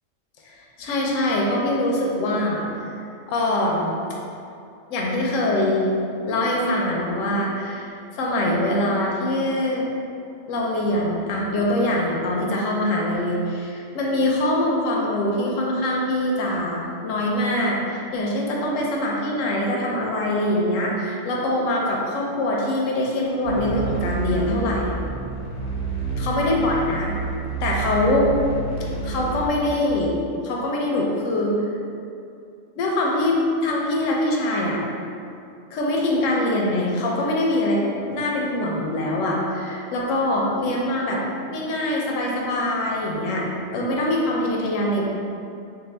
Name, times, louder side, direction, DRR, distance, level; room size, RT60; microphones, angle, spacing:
voice 1, 0.4-2.7 3.3-4.0 4.9-5.9 6.3-7.9 8.2-9.8 10.5-24.9 26.2-27.1 27.6-28.3 29.0-30.2 30.4-31.6 32.8-34.8 35.7-41.2 41.5-43.5 43.7-45.0, left 1 dB, 85° left, -2 dB, 0.9 m, -23 dB
sound 1, 23.4-29.5, right 3 dB, 50° left, 0.7 m, -29 dB
3.5 x 2.5 x 3.2 m, 2.6 s
omnidirectional pair, 1.3 m